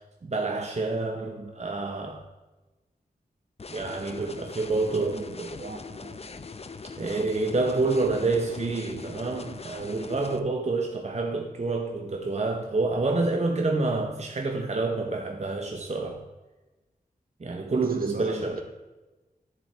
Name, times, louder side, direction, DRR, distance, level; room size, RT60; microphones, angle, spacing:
voice 1, 0.0-2.2 3.7-5.5 7.0-16.2 17.4-18.6, right 3 dB, 45° right, 0.8 m, -28 dB
sound 1, 3.6-10.4, left 4 dB, 40° left, 0.5 m, -41 dB
voice 2, 4.8-6.4 17.8-18.6, right 3 dB, 65° right, 1.3 m, -41 dB
10.5 x 7.3 x 3.3 m
wide cardioid pair, 90°, 16 cm